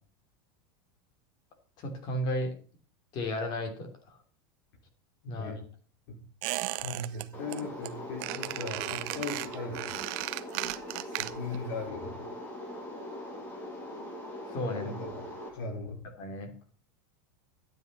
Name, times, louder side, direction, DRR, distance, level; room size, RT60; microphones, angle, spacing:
voice 1, 1.8-2.5 3.1-3.9 5.3-5.6 14.5-14.9 16.2-16.5, left 1 dB, 35° left, 6 dB, 3.1 m, -33 dB
Squeak, 6.4-7.2 7.5-7.9 8.2-11.6 11.9-12.0, right 18 dB, 45° right, 0.8 m, -35 dB
voice 2, 6.8-9.9 11.0-12.2 14.7-16.0, left 3 dB, 65° left, 2 dB, 5.0 m, -38 dB
sound 1, 7.3-15.5, left 1 dB, 15° left, 3.0 m, -41 dB
12.5 x 9.4 x 5.5 m, 0.41 s
supercardioid pair, 170°, 12 cm